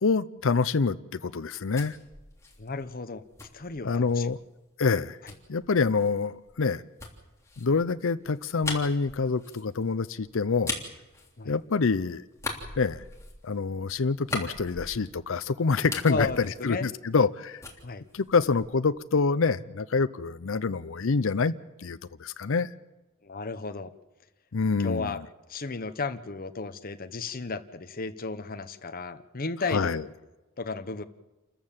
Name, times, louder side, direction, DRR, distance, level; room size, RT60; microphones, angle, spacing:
voice 1, 0.0-2.0 3.8-4.4 4.8-5.2 5.5-6.8 7.6-10.8 11.4-12.2 12.8-13.0 13.4-17.6 18.1-21.5 21.8-22.7 24.5-25.2 29.7-30.0, left 4 dB, 65° left, 0.6 m, -26 dB
sound 1, 1.4-4.4 5.3-11.9 12.3-15.4 15.7-17.3 17.6-18.9, left 3 dB, 15° left, 3.3 m, -40 dB
voice 2, 2.6-3.2 3.5-4.3 11.4-11.5 16.1-16.9 17.8-18.0 23.2-23.9 24.8-25.2 25.5-29.9 30.6-31.0, left 4 dB, 45° left, 1.0 m, -34 dB
28.5 x 14.0 x 7.3 m
head